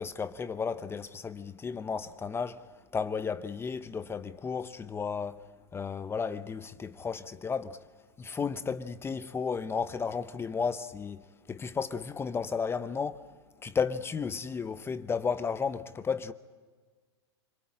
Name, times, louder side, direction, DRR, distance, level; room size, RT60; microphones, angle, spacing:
voice 1, 0.0-2.6 2.9-5.4 5.7-7.8 8.2-11.2 11.5-13.2 13.6-16.3, left 5 dB, 15° left, 0.8 m, -33 dB
29.0 x 22.0 x 8.7 m
hypercardioid pair, 115°, 14 cm